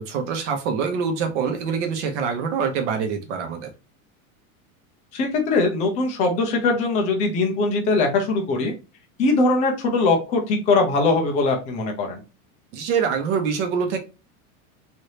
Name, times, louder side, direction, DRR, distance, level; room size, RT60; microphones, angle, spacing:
voice 1, 0.1-3.7 12.7-14.0, right 6 dB, 55° right, 5 dB, 1.0 m, -25 dB
voice 2, 5.1-8.7 9.2-12.2, left 3 dB, 20° left, 2 dB, 0.4 m, -21 dB
3.3 x 2.7 x 2.7 m, 0.31 s
supercardioid pair, 165°, 43 cm